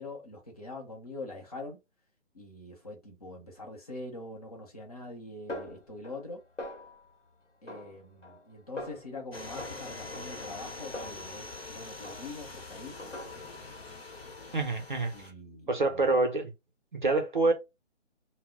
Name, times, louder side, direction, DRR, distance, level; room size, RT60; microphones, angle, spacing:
voice 1, 0.0-1.8 2.3-6.4 7.6-13.0 15.1-16.0, left 2 dB, 30° left, 0.6 m, -44 dB
Snare drum, 5.5-6.3 6.6-7.2 7.7-8.5 8.8-9.2 9.6-11.7 12.0-12.6 13.0-13.7, left 1 dB, 85° left, 0.9 m, -43 dB
sound 1, 9.3-15.3, left 3 dB, 55° left, 0.9 m, -44 dB
voice 2, 14.5-15.1 15.7-16.5 16.9-17.5, right 3 dB, 45° right, 0.5 m, -26 dB
2.1 x 2.0 x 3.6 m
figure-of-eight pair, 145°, 36 cm